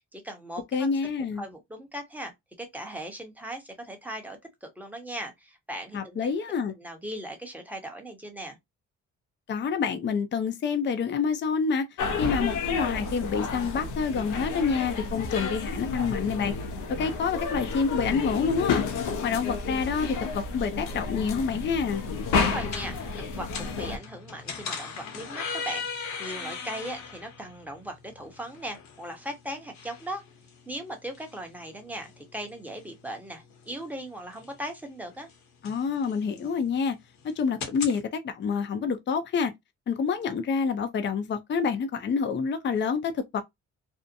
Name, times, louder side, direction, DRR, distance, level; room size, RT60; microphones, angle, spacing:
voice 1, 0.0-0.9 1.4-2.3 2.6-6.3 6.8-8.6 22.3-25.9 26.2-30.2 30.7-35.3, right 1 dB, 5° right, 0.9 m, -38 dB
voice 2, 0.7-1.5 5.9-6.7 9.5-11.9 12.2-16.5 17.0-18.8 19.2-22.0 35.6-36.9 37.2-39.5 39.9-43.4, left 6 dB, 40° left, 0.5 m, -27 dB
sound 1, 12.0-24.0, left 4 dB, 85° left, 0.6 m, -31 dB
sound 2, 20.8-38.0, left 5 dB, 65° left, 0.9 m, -41 dB
2.6 x 2.1 x 2.5 m
cardioid pair, 90°, 30 cm